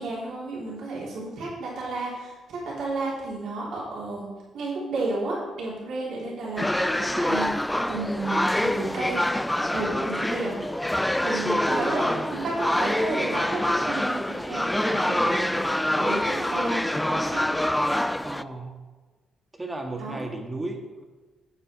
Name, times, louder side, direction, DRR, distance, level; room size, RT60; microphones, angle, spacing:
voice 1, 0.0-4.3 4.5-9.2 9.7-10.6 11.2-15.6 15.9-17.5 20.0-20.2, right 2 dB, 75° right, -6 dB, 3.6 m, -32 dB
sound 1, 6.6-18.4, left 1 dB, 5° left, 0.3 m, -26 dB
voice 2, 11.7-12.5 18.2-18.8 19.5-21.0, right 2 dB, 20° right, 3 dB, 1.6 m, -36 dB
8.8 x 8.1 x 4.7 m, 1.2 s
cardioid pair, 90°, 0 cm